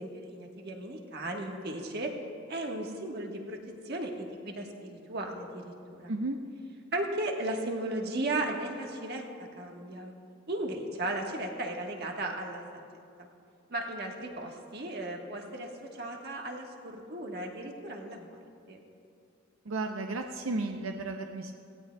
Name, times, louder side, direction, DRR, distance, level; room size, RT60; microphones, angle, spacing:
voice 1, 0.0-2.1 2.5-3.6 3.8-6.1 6.9-9.2 9.6-10.1 10.5-12.6 13.2-13.3 13.7-18.3 18.7-18.8, right 1 dB, 50° right, 1 dB, 1.3 m, -36 dB
voice 2, 19.7-21.6, right 2 dB, 85° right, 4 dB, 0.6 m, -33 dB
18.0 x 16.0 x 2.3 m, 2.4 s
head